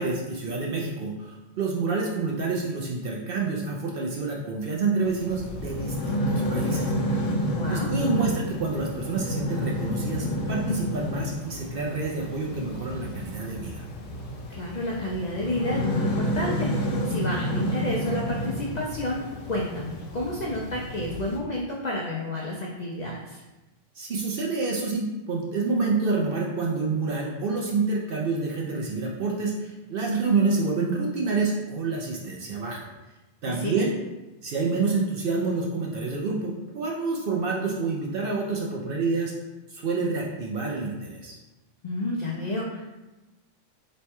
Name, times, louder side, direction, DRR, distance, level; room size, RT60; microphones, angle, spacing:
voice 1, 0.0-6.9 7.7-13.8 23.9-32.9 33.4-33.9 34.4-39.3 39.7-41.4, right 4 dB, 60° right, -2 dB, 0.6 m, -28 dB
sound 1, 5.0-21.4, equal, 85° left, 1.0 m, -30 dB
voice 2, 7.5-7.9 14.5-23.4 33.4-33.7 41.8-42.9, left 1 dB, 70° left, -3 dB, 0.4 m, -30 dB
3.1 x 2.2 x 4.2 m, 1.1 s
omnidirectional pair, 1.3 m